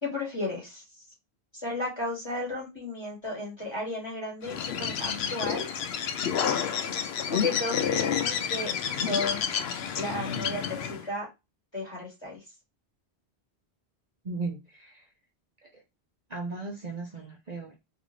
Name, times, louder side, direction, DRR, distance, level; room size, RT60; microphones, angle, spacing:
voice 1, 0.0-0.8 1.5-5.7 7.3-9.6 10.0-11.3 11.7-12.4, left 2 dB, 25° left, -4 dB, 2.3 m, -34 dB
Bird, 4.4-11.1, left 8 dB, 70° left, 0.8 m, -29 dB
voice 2, 14.2-15.1 15.7-15.8 16.3-17.8, right 3 dB, 45° right, 0 dB, 0.8 m, -36 dB
4.0 x 2.8 x 3.2 m, 0.24 s
omnidirectional pair, 1.1 m